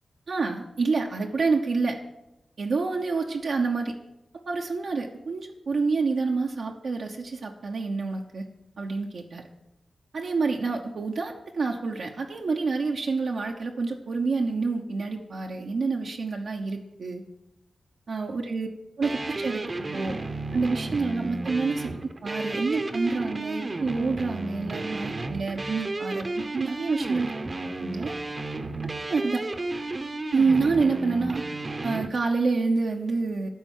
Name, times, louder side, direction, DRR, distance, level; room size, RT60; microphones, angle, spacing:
voice 1, 0.3-2.0 2.6-3.9 4.5-8.4 8.8-9.4 10.1-17.2 18.1-18.7 19.0-19.6 19.9-20.2 20.5-26.3 26.5-27.3 27.8-28.1 29.0-29.4 30.3-31.4 31.8-33.5, right 4 dB, 75° right, 1 dB, 1.0 m, -27 dB
sound 1, 19.0-32.1, right 2 dB, 40° right, 0.9 m, -33 dB
12.5 x 4.4 x 8.2 m, 0.90 s
cardioid pair, 70°, 0 cm